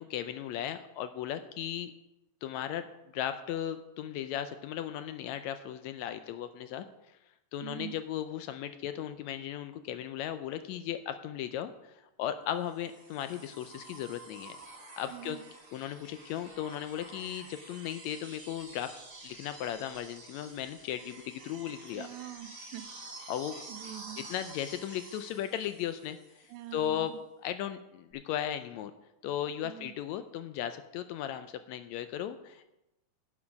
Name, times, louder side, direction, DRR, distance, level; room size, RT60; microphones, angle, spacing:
voice 1, 0.0-1.9 2.4-2.9 3.1-6.8 7.5-14.6 15.0-15.4 15.7-22.1 23.3-23.5 24.3-27.1 27.4-28.9 29.2-32.7, left 10 dB, 80° left, 10 dB, 1.7 m, -36 dB
voice 2, 7.6-8.0 15.1-15.4 21.9-23.3 23.7-24.3 26.5-27.2 29.6-29.9, right 14 dB, 80° right, 11 dB, 1.9 m, -45 dB
sound 1, 12.6-26.7 28.1-28.2, right 2 dB, 25° right, 1.4 m, -49 dB
10.5 x 7.3 x 5.2 m, 0.93 s
omnidirectional pair, 3.5 m